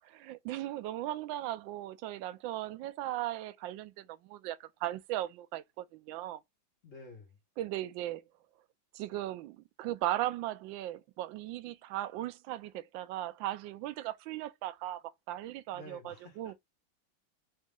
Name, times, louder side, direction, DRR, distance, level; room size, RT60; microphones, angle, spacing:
voice 1, 0.0-6.4 7.6-8.2 8.9-16.5, right 14 dB, 75° right, 1.3 m, -37 dB
voice 2, 6.8-7.4 15.7-16.6, left 2 dB, 40° left, 2.0 m, -51 dB
4.1 x 2.9 x 3.7 m
omnidirectional pair, 2.2 m